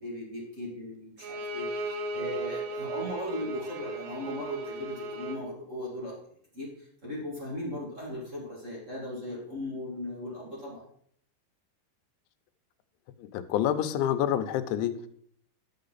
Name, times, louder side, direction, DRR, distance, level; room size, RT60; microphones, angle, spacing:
voice 1, 0.0-6.2 6.5-10.8, left 1 dB, 35° right, -5 dB, 1.2 m, -38 dB
Bowed string instrument, 1.2-5.5, right 2 dB, 75° right, 3.1 m, -36 dB
voice 2, 13.2-15.1, left 10 dB, 85° left, 10 dB, 3.1 m, -28 dB
11.5 x 6.5 x 4.0 m, 0.65 s
omnidirectional pair, 5.3 m